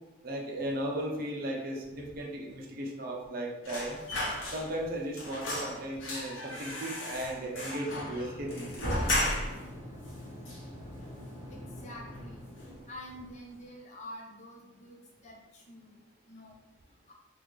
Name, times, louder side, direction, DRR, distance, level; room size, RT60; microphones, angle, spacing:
voice 1, 0.2-4.0 4.5-8.9, right 1 dB, 50° right, 0 dB, 0.6 m, -36 dB
sound 1, 3.6-4.9 5.2-9.7 10.1-10.2 10.5-11.3 11.6-11.8 12.1-12.8 13.1-13.3, left 1 dB, 80° left, 0.9 m, -35 dB
sound 2, 7.8-13.0, left 1 dB, 10° right, 1.4 m, -45 dB
voice 2, 11.5-17.1, left 1 dB, 35° left, -2 dB, 0.7 m, -48 dB
3.7 x 2.4 x 3.1 m, 0.99 s
head